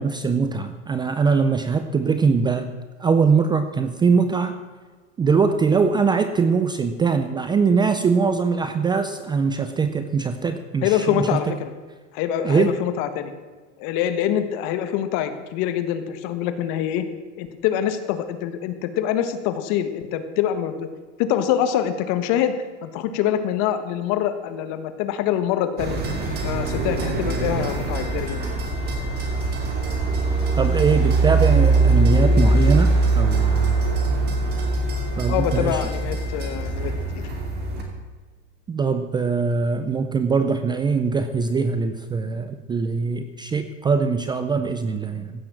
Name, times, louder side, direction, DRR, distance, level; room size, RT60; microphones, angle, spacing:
voice 1, 0.0-2.7 3.0-4.6 5.2-11.4 12.4-12.7 30.6-33.8 35.2-35.8 38.7-45.3, right 5 dB, 15° right, 9 dB, 0.5 m, -22 dB
voice 2, 10.8-11.7 12.1-13.3 13.8-17.0 17.4-20.9 21.2-26.0 26.4-28.4 35.3-37.2, left 10 dB, 50° left, 10 dB, 1.4 m, -25 dB
sound 1, 25.8-37.8, right 3 dB, 30° right, 2.6 m, -22 dB
15.5 x 6.9 x 7.4 m, 1.4 s
supercardioid pair, 135°, 35 cm